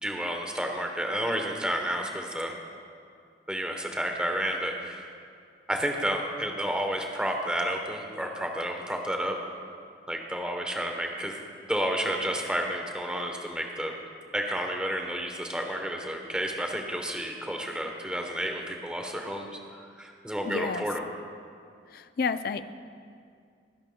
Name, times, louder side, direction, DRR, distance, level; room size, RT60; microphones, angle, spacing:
voice 1, 0.0-2.6 3.5-5.1 5.7-9.4 10.1-11.4 11.7-13.9 14.3-19.5 20.0-21.0, equal, 5° right, 2 dB, 0.9 m, -31 dB
voice 2, 20.5-20.8 21.9-22.6, left 5 dB, 55° left, 12 dB, 0.4 m, -30 dB
21.5 x 10.5 x 2.2 m, 2.3 s
head